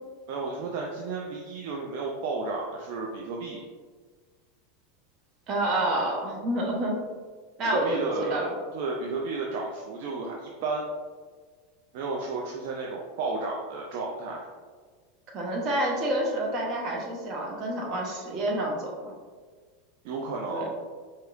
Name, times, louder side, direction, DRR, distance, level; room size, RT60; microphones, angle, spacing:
voice 1, 0.3-3.6 7.6-10.8 11.9-14.5 20.0-20.7, right 3 dB, 55° right, -1 dB, 0.4 m, -32 dB
voice 2, 5.5-7.0 7.6-8.5 15.3-18.9 20.5-20.7, right 1 dB, 40° right, -1 dB, 0.9 m, -28 dB
4.7 x 2.8 x 2.4 m, 1.5 s
figure-of-eight pair, 85°, 0 cm